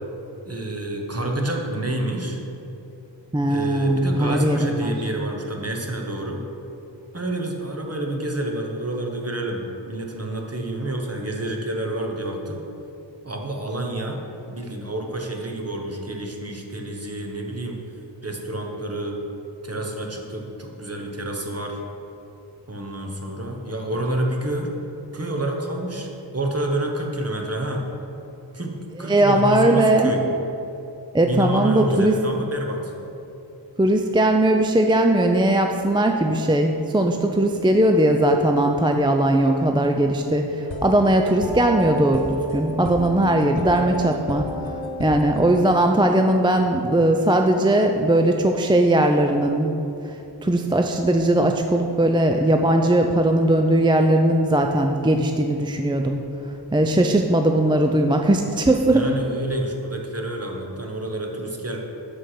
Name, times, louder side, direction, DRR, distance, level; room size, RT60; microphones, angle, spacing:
voice 1, 0.4-2.4 3.5-6.4 7.1-12.6 13.2-14.2 14.5-17.8 18.2-19.2 19.6-21.8 22.7-24.7 25.1-27.8 28.5-30.2 31.3-32.9 58.8-61.8, right 1 dB, 35° right, 1 dB, 1.0 m, -28 dB
voice 2, 3.3-4.9 29.0-30.1 31.1-32.1 33.8-44.4 45.0-49.8 50.1-50.2 50.4-56.2 56.7-59.1, right 1 dB, 10° right, 3 dB, 0.3 m, -19 dB
sound 1, 40.6-45.7, left 1 dB, 85° left, 0.7 m, -32 dB
6.3 x 5.3 x 5.7 m, 2.9 s
wide cardioid pair, 45°, 45 cm